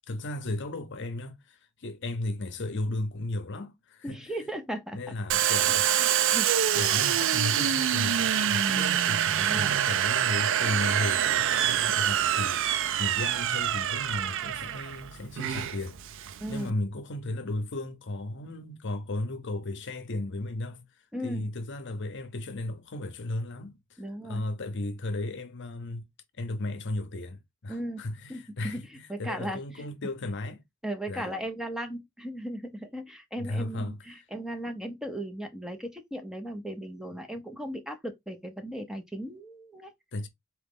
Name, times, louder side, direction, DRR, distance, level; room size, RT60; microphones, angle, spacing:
voice 1, 0.1-4.2 4.9-6.4 6.7-16.0 16.5-20.9 21.2-26.0 26.4-30.6 31.1-31.3 33.4-34.0 40.1-40.3, left 2 dB, 55° left, 0.7 m, -35 dB
voice 2, 4.0-5.1 5.6-6.8 9.4-9.8 16.4-16.8 21.1-21.4 24.0-24.4 27.7-28.0 28.3-29.9 30.8-39.9, right 1 dB, ahead, 0.6 m, -37 dB
Domestic sounds home sounds, 5.3-16.7, right 10 dB, 60° right, 0.4 m, -26 dB
4.2 x 3.0 x 3.5 m
head